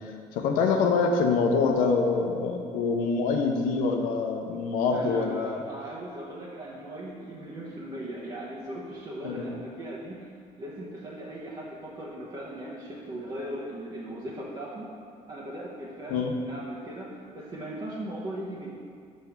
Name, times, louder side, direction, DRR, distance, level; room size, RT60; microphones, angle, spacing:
voice 1, 0.0-5.6 9.2-9.5 16.1-16.3, left 4 dB, 85° left, 2 dB, 0.8 m, -25 dB
voice 2, 4.9-10.3 10.6-14.9 15.3-18.7, right 1 dB, 35° right, -8 dB, 1.3 m, -38 dB
5.7 x 5.3 x 5.9 m, 2.2 s
cardioid pair, 100°, 14 cm